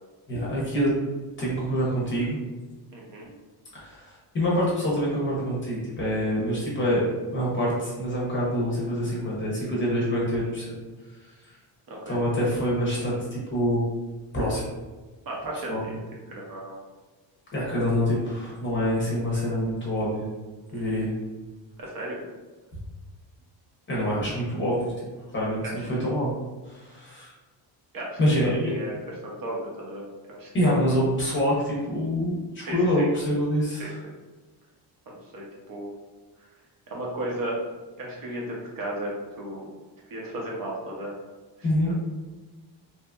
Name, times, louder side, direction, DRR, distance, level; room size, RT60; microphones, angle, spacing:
voice 1, 0.3-0.9 1.4-2.4 3.7-7.1 7.3-10.8 11.5-11.6 12.1-13.8 14.3-14.7 15.7-15.8 17.5-20.3 20.7-21.1 23.9-24.9 25.3-26.3 26.7-27.3 28.2-28.7 30.5-34.0 41.6-41.9, equal, 25° left, -6 dB, 0.6 m, -26 dB
voice 2, 2.9-3.3 11.9-12.2 15.3-16.0 16.3-16.7 20.7-21.0 21.8-22.2 25.6-25.9 27.9-28.2 28.6-30.9 32.6-33.1 33.8-34.1 35.1-35.9 36.9-37.6 38.0-39.7 40.1-41.2 41.6-41.9, right 1 dB, 50° right, -3 dB, 0.6 m, -35 dB
2.8 x 2.4 x 2.2 m, 1.3 s
cardioid pair, 165°, 45 cm